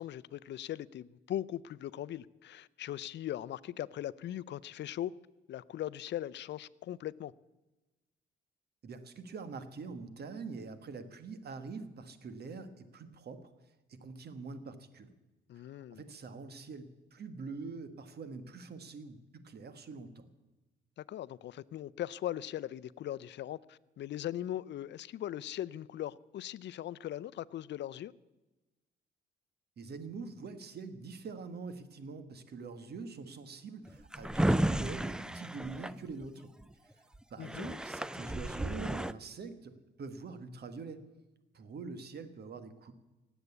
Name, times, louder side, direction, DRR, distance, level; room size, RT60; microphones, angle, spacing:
voice 1, 0.0-5.1 5.5-7.3 15.5-16.0 21.0-28.1 37.4-37.8, left 12 dB, 65° left, 0.5 m, -39 dB
voice 2, 8.8-15.1 15.6-20.3 29.8-36.5 36.9-37.0 37.3-41.0 41.5-42.9, right 4 dB, 55° right, 1.6 m, -45 dB
Drawer open or close, 33.9-36.6 37.1-37.2 37.4-39.1, right 1 dB, 5° right, 0.4 m, -33 dB
18.0 x 8.1 x 8.3 m
cardioid pair, 90°, 20 cm